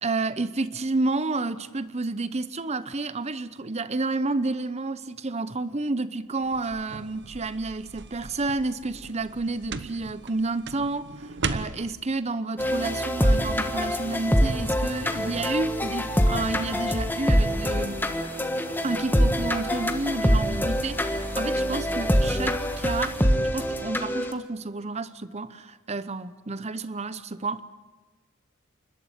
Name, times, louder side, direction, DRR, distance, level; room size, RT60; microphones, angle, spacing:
voice 1, 0.0-18.1 18.8-23.2 23.5-27.6, right 3 dB, 30° right, 0.8 m, -30 dB
sound 1, 6.4-11.9, right 4 dB, 55° right, 1.0 m, -37 dB
sound 2, 12.6-24.3, equal, 10° left, 1.4 m, -25 dB
28.5 x 12.5 x 9.6 m
head